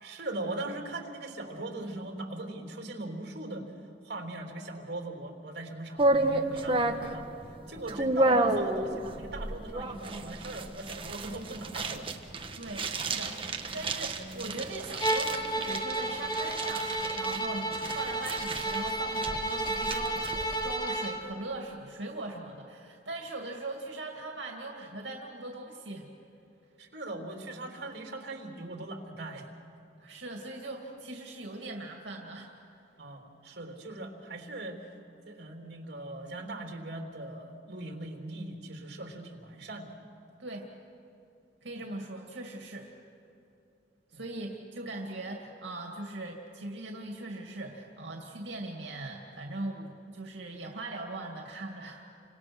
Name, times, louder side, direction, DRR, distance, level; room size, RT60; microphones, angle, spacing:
voice 1, 0.0-3.7 4.0-7.3 7.7-12.1 26.8-29.5 33.0-34.8 35.3-39.9 44.1-44.2, right 2 dB, 65° right, 2 dB, 3.4 m, -40 dB
sound 1, 6.0-20.7, right 2 dB, 30° right, 1.3 m, -31 dB
voice 2, 12.5-26.1 30.0-32.5 40.4-40.7 41.6-42.9 44.1-52.1, right 2 dB, 85° right, 1 dB, 2.4 m, -40 dB
Bowed string instrument, 15.0-21.2, right 1 dB, 25° left, 2.0 m, -32 dB
30.0 x 25.5 x 6.3 m, 2.7 s
head